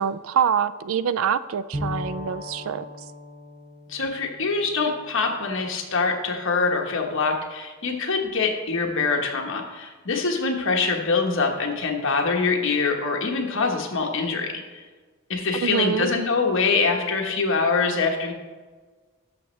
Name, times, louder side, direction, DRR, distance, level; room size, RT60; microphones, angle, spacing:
voice 1, 0.0-2.8 15.5-16.1, right 7 dB, 75° right, 16 dB, 0.4 m, -25 dB
Bowed string instrument, 1.7-5.5, left 1 dB, 50° right, 2.5 m, -37 dB
voice 2, 3.9-14.5 15.3-18.3, left 4 dB, 65° left, 2 dB, 1.2 m, -24 dB
12.5 x 6.0 x 3.2 m, 1.3 s
head